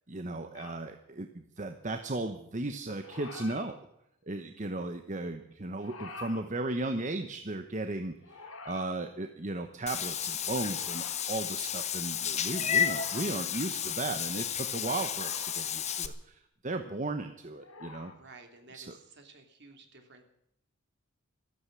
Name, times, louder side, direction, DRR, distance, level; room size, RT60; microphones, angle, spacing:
voice 1, 0.1-3.8 4.3-18.1 18.7-19.0, right 2 dB, 35° right, 7 dB, 1.0 m, -36 dB
sound 1, 0.5-0.8 2.9-3.7 5.7-6.4 8.2-9.0 10.6-11.2 12.7-13.4 14.9-15.6 17.6-18.1, left 3 dB, 90° left, 4.5 m, -47 dB
Meow / Water / Bathtub (filling or washing), 9.9-16.1, left 9 dB, 30° left, 1.0 m, -32 dB
voice 2, 18.0-20.2, right 3 dB, 55° right, 5 dB, 2.9 m, -54 dB
14.5 x 13.5 x 7.5 m, 0.77 s
head